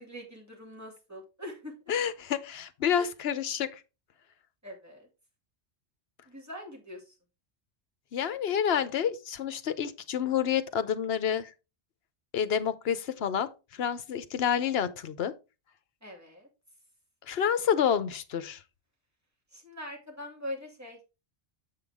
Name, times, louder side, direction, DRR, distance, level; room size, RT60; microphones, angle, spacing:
voice 1, 0.0-1.7 3.0-3.1 4.6-5.1 6.3-7.1 16.0-16.5 19.5-21.0, left 1 dB, 15° right, 2.4 m, -42 dB
voice 2, 1.9-3.8 8.1-11.5 12.3-15.3 17.3-18.6, left 8 dB, 65° left, 1.0 m, -29 dB
7.7 x 5.7 x 3.5 m
omnidirectional pair, 1.1 m